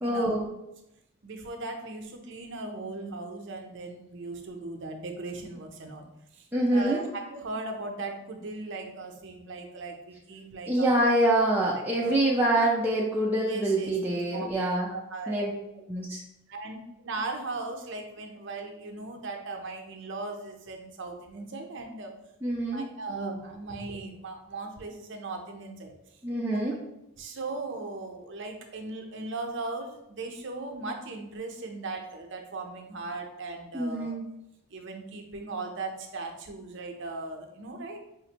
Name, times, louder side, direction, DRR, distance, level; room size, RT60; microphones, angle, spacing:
voice 1, 0.0-0.4 6.5-7.0 10.7-14.9 15.3-15.5 15.9-16.2 22.4-22.9 26.2-26.7 33.7-34.2, right 1 dB, 10° right, -5 dB, 0.4 m, -25 dB
voice 2, 1.2-6.1 6.3-11.0 11.4-11.5 12.0-12.1 12.6-12.7 13.4-15.4 16.5-22.1 22.7-26.0 26.5-26.6 27.2-34.2 34.7-38.0, right 3 dB, 60° right, 3 dB, 0.6 m, -38 dB
5.0 x 2.5 x 2.8 m, 0.85 s
head